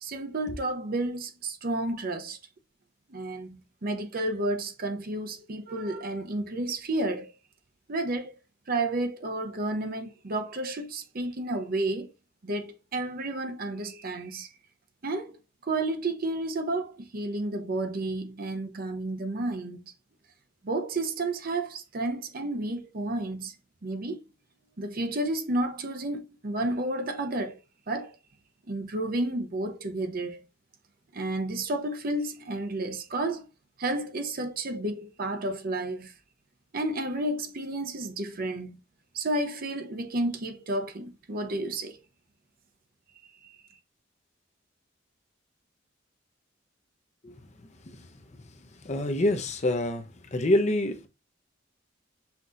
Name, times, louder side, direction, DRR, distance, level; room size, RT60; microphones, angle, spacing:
voice 1, 0.0-2.4 3.1-7.3 7.9-8.3 8.7-12.1 12.4-14.5 15.0-15.4 15.7-19.8 20.6-23.5 23.8-24.2 24.8-27.6 27.9-28.1 28.7-30.4 31.1-33.5 33.8-36.1 36.7-38.8 39.1-42.0, right 2 dB, 50° right, 0.7 m, -31 dB
voice 2, 48.8-50.0 50.3-51.1, left 1 dB, 35° left, 0.7 m, -26 dB
5.8 x 2.8 x 2.5 m
head